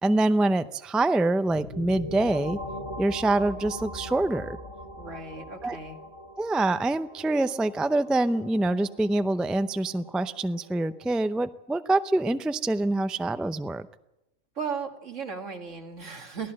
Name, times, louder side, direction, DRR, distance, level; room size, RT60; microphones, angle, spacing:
voice 1, 0.0-2.6 3.0-4.6 5.6-5.8 6.4-13.9, right 2 dB, ahead, 11 dB, 0.3 m, -25 dB
sound 1, 1.5-11.1, equal, 45° left, 2.3 m, -41 dB
voice 2, 5.0-6.0 14.6-16.5, right 5 dB, 80° right, 3 dB, 2.5 m, -36 dB
23.0 x 16.5 x 7.7 m, 0.91 s
omnidirectional pair, 1.3 m